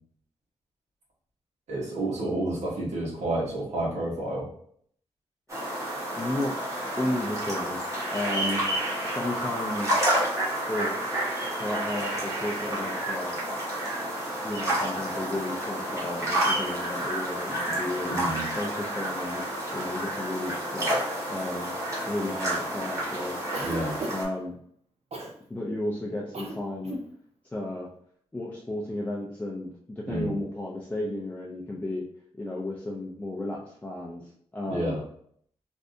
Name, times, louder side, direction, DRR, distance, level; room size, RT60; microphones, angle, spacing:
voice 1, 1.7-4.5 18.1-18.4 23.6-24.0 30.1-30.3 34.7-35.0, right 1 dB, 85° right, -4 dB, 1.2 m, -30 dB
sound 1, 5.5-24.2, right 1 dB, 25° right, 1.1 m, -30 dB
voice 2, 6.1-6.6 7.0-8.7 9.0-10.0 10.7-11.3 11.6-13.3 14.4-18.2 18.6-19.5 19.7-21.8 22.0-23.5 24.1-24.6 25.5-27.0 27.5-27.9 28.3-32.0 32.4-34.9, left 1 dB, 15° left, -4 dB, 0.5 m, -33 dB
Cough, 23.5-24.4 25.1-25.4 26.3-26.6 26.8-27.1, right 2 dB, 65° right, 0.6 m, -34 dB
3.3 x 2.6 x 2.6 m, 0.64 s
wide cardioid pair, 100°, 12 cm